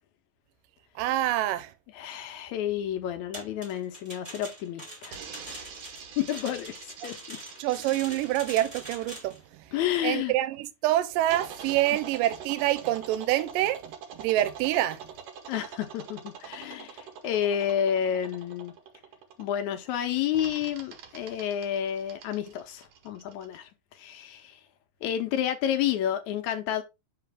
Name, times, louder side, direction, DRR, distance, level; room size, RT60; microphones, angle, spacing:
voice 1, 1.0-1.7 7.6-9.4 10.0-15.0, right 14 dB, 85° right, 2.3 m, -26 dB
voice 2, 1.9-5.2 6.2-7.4 9.7-10.3 15.5-18.7 19.4-23.7 24.0-24.6 25.0-26.8, left 10 dB, 75° left, 1.8 m, -30 dB
sound 1, 3.3-9.4, right 1 dB, 20° right, 1.3 m, -44 dB
sound 2, 5.1-10.0 11.3-19.7 20.3-23.6, right 7 dB, 65° right, 1.7 m, -45 dB
5.8 x 4.9 x 3.4 m
omnidirectional pair, 3.9 m